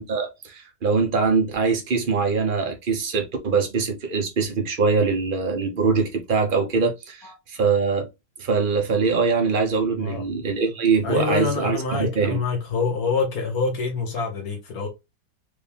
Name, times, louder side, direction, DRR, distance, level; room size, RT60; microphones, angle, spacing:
voice 1, 0.0-8.1 8.4-12.4, right 4 dB, 35° right, 1.1 m, -23 dB
voice 2, 11.0-14.9, left 4 dB, 65° left, 1.4 m, -26 dB
4.8 x 2.8 x 3.4 m
omnidirectional pair, 1.7 m